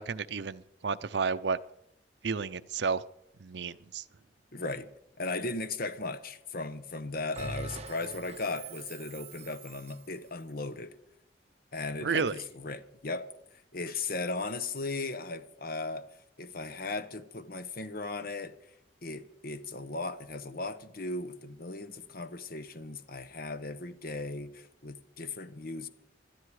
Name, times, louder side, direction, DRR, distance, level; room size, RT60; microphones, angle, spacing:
voice 1, 0.0-1.6 2.2-3.0 3.4-4.0 12.0-12.3, right 5 dB, 75° right, 0.6 m, -31 dB
voice 2, 4.5-4.9 5.2-10.9 11.7-16.1 16.4-18.5 19.0-25.9, left 3 dB, 55° left, 1.1 m, -37 dB
Bell, 7.3-10.1, right 3 dB, 35° right, 1.3 m, -43 dB
21.0 x 12.5 x 4.9 m
head